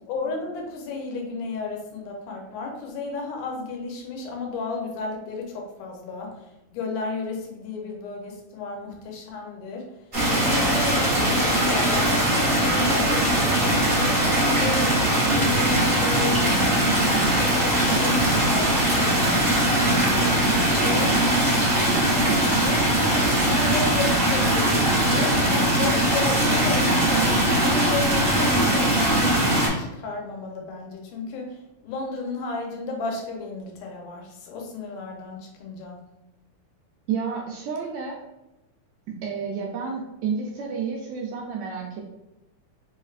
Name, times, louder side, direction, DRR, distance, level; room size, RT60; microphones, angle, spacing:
voice 1, 0.1-9.8 10.3-14.9 15.2-19.1 19.7-21.2 21.7-22.9 23.3-36.0, left 3 dB, 85° left, 1 dB, 2.3 m, -33 dB
sound 1, 10.1-29.7, right 1 dB, 60° right, 0.5 m, -21 dB
voice 2, 37.1-38.2 39.2-42.0, right 6 dB, 80° right, -1 dB, 1.6 m, -30 dB
4.8 x 3.2 x 2.4 m, 0.96 s
omnidirectional pair, 3.6 m